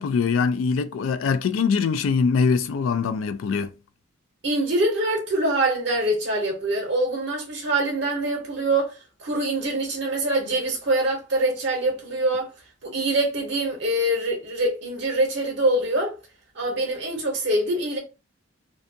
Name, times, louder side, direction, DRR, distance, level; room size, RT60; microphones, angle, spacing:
voice 1, 0.0-3.7, left 5 dB, 80° left, 0.3 m, -23 dB
voice 2, 4.4-12.5 12.8-16.1 16.5-18.0, right 1 dB, 60° right, 0.7 m, -24 dB
2.6 x 2.2 x 2.6 m
head